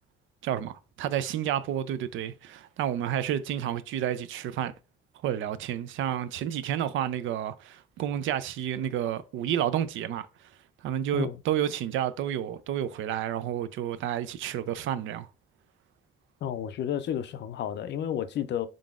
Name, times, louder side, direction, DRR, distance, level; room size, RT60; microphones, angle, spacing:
voice 1, 0.4-4.7 5.2-10.3 10.8-15.3, right 10 dB, 80° right, 0.4 m, -30 dB
voice 2, 16.4-18.7, left 9 dB, 65° left, 0.4 m, -31 dB
3.8 x 3.6 x 2.3 m
cardioid pair, 90°, 20 cm